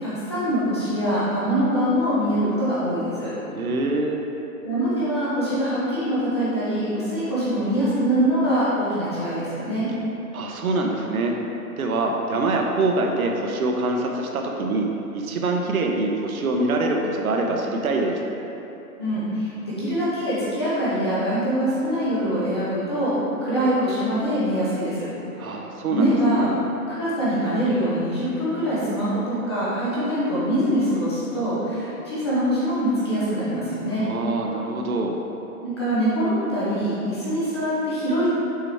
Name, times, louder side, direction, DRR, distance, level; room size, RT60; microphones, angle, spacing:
voice 1, 0.0-3.3 4.6-9.8 19.0-23.1 23.4-25.1 25.4-25.5 25.9-26.5 26.9-34.0 35.6-38.3, equal, 20° left, -10 dB, 0.7 m, -24 dB
voice 2, 3.5-4.2 10.3-11.3 11.8-14.9 15.1-18.2 25.4-26.5 34.0-35.2, right 2 dB, 65° right, 1 dB, 0.9 m, -24 dB
6.8 x 4.5 x 3.4 m, 3.0 s
hypercardioid pair, 175°, 45 cm